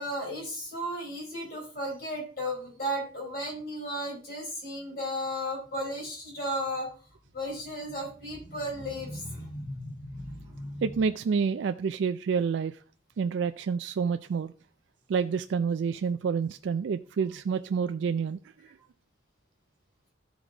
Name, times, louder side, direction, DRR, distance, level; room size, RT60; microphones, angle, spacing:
voice 1, 0.0-6.9 7.3-10.9, equal, 50° left, 4.4 m, -35 dB
voice 2, 10.8-12.8 13.2-14.5 15.1-18.4, right 6 dB, 75° right, 0.3 m, -28 dB
13.0 x 4.8 x 3.8 m
head